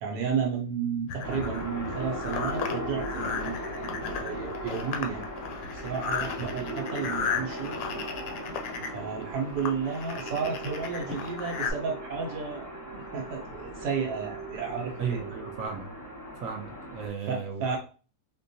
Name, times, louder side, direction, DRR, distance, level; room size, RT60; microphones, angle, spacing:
voice 1, 0.0-5.2 5.7-7.8 8.8-15.2 17.2-17.8, right 6 dB, 80° right, 1 dB, 1.2 m, -32 dB
sound 1, 1.1-11.7, left 6 dB, 70° left, 0.9 m, -35 dB
sound 2, 1.2-17.1, equal, 20° left, 0.5 m, -39 dB
sound 3, 3.3-15.7, right 7 dB, 40° right, 0.4 m, -45 dB
voice 2, 15.0-15.9 16.4-17.8, right 6 dB, 65° right, 3 dB, 0.9 m, -35 dB
4.4 x 2.2 x 2.6 m, 0.36 s
omnidirectional pair, 1.8 m